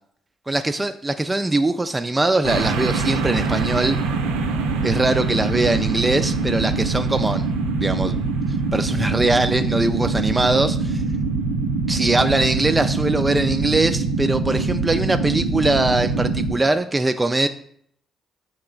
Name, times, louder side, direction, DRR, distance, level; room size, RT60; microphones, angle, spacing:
voice 1, 0.5-4.0 4.8-7.5 7.8-8.2 8.7-11.0 11.9-17.5, right 2 dB, 20° right, 8 dB, 0.4 m, -21 dB
sound 1, 2.4-16.5, right 4 dB, 80° right, 0.5 m, -23 dB
7.5 x 2.9 x 2.4 m, 0.65 s
hypercardioid pair, 45°, 0 cm